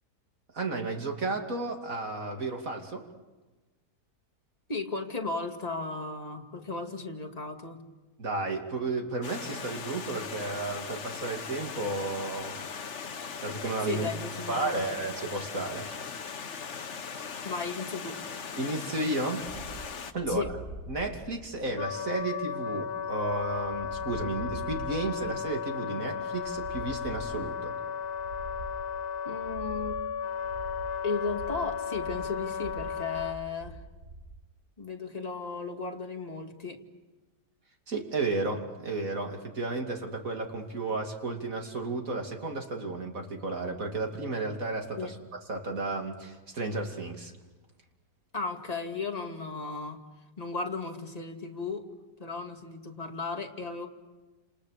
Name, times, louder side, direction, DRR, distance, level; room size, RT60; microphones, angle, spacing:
voice 1, 0.5-3.1 8.2-12.6 13.4-14.1 14.3-15.9 17.4-17.5 18.6-19.4 20.1-20.4 20.9-27.7 37.9-45.2 45.5-47.3, right 2 dB, 60° right, 3 dB, 3.2 m, -33 dB
voice 2, 4.7-7.8 13.9-14.9 17.4-18.2 20.3-20.5 29.2-29.9 31.0-33.8 34.8-36.8 45.0-45.2 48.3-50.0 50.4-51.9 52.2-53.9, left 4 dB, 25° left, 3 dB, 2.3 m, -35 dB
Stream, 9.2-20.1, left 6 dB, 50° left, 1.4 m, -39 dB
sound 1, 19.4-34.3, right 3 dB, 80° right, 4.6 m, -45 dB
Wind instrument woodwind instrument, 21.8-33.4, left 7 dB, 85° left, 1.6 m, -35 dB
30.0 x 28.5 x 6.7 m, 1.2 s
omnidirectional pair, 1.6 m